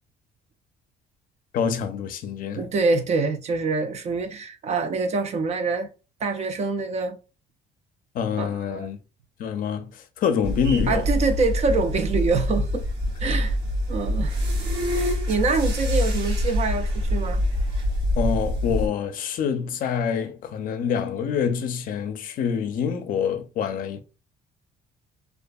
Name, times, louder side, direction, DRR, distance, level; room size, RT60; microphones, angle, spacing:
voice 1, 1.5-2.6 8.1-9.0 9.4-11.1 13.3-13.4 18.2-24.0, left 7 dB, 55° left, 0.5 m, -26 dB
voice 2, 2.5-5.9 6.2-7.2 8.4-8.9 10.9-12.8 13.2-13.6 13.9-14.4 14.9-17.4, right 4 dB, 40° right, 0.4 m, -25 dB
sound 1, 10.4-18.9, left 1 dB, 85° right, 0.9 m, -25 dB
2.6 x 2.3 x 2.3 m
cardioid pair, 110°, 17 cm